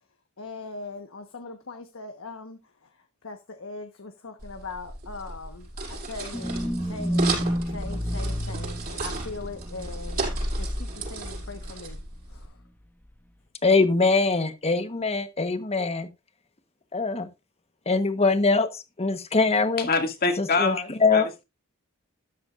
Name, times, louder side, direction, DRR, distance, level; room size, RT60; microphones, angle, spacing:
voice 1, 0.4-2.9 3.2-6.5 6.8-7.4 7.7-10.2 10.6-12.0 12.3-12.6, left 3 dB, 65° left, 1.2 m, -40 dB
sound 1, 4.4-12.5, right 3 dB, 40° right, 5.6 m, -35 dB
sound 2, 6.3-12.0 12.3-12.4, equal, 10° left, 0.9 m, -30 dB
voice 2, 13.6-16.1 16.9-17.3 17.9-19.9 20.4-21.3, left 3 dB, 30° left, 1.1 m, -23 dB
voice 3, 19.9-21.4, left 3 dB, 45° left, 2.2 m, -26 dB
13.0 x 10.5 x 2.5 m
head